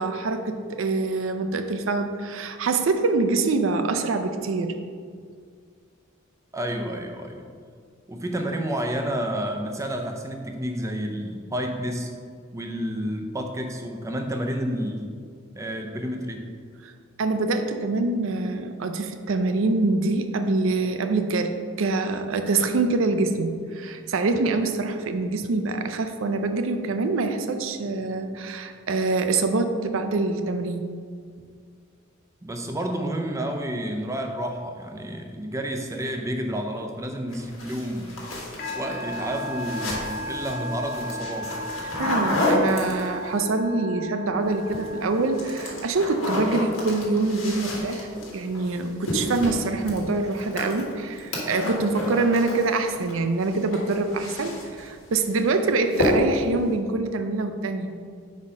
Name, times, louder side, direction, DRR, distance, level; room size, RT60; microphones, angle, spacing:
voice 1, 0.0-4.7 17.2-30.9 42.0-57.9, right 3 dB, 70° right, 7 dB, 0.5 m, -25 dB
voice 2, 6.5-7.5 8.1-12.2 12.5-15.2 15.6-16.5 32.4-38.2 38.7-41.5, equal, 15° right, 3 dB, 0.5 m, -30 dB
sound 1, 37.3-43.4 44.5-44.9 45.2-53.1 53.4-54.9 55.2-55.5 55.9-56.5, left 1 dB, 85° left, 1.4 m, -30 dB
Musical instrument, 38.6-46.2, left 1 dB, 50° left, 0.9 m, -35 dB
5.3 x 4.2 x 4.8 m, 2.1 s
head